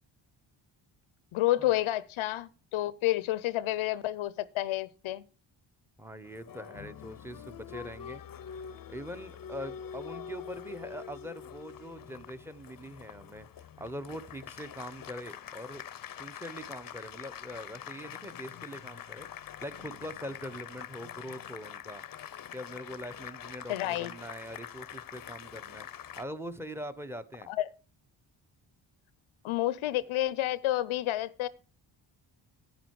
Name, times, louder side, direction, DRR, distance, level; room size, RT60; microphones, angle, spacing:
voice 1, 1.3-5.2 23.7-24.1 27.5-27.7 29.4-31.5, left 15 dB, 80° left, 0.7 m, -30 dB
voice 2, 6.0-8.2 8.5-15.8 16.1-22.0 22.5-27.5, equal, 5° right, 1.1 m, -43 dB
Applause, 6.2-26.2, left 9 dB, 45° left, 0.7 m, -45 dB
10.0 x 9.3 x 4.7 m
cardioid pair, 60°, 48 cm